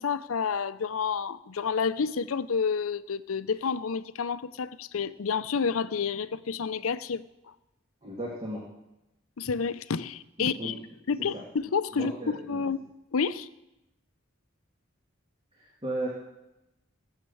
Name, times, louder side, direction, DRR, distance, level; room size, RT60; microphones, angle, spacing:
voice 1, 0.0-7.2 9.4-10.7 11.1-12.8 13.1-13.5, left 5 dB, 85° left, 15 dB, 0.6 m, -29 dB
voice 2, 8.0-8.7 10.4-10.8 11.3-11.4 11.9-12.6 15.5-16.1, right 1 dB, 25° right, -2 dB, 1.9 m, -35 dB
17.0 x 7.5 x 7.0 m, 0.94 s
head